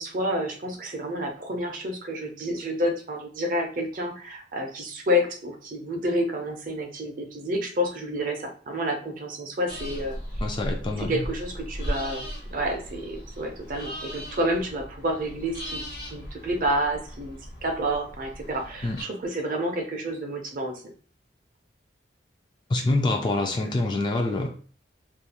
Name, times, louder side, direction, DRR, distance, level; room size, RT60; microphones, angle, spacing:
voice 1, 0.0-10.2 11.0-15.8 16.1-20.8, equal, 45° right, 2 dB, 0.5 m, -29 dB
sound 1, 9.7-19.0, equal, 55° left, 0.7 m, -37 dB
voice 2, 10.4-11.2 18.8-19.0 22.7-24.6, left 2 dB, 25° left, 2 dB, 0.3 m, -26 dB
2.4 x 2.3 x 2.8 m, 0.42 s
head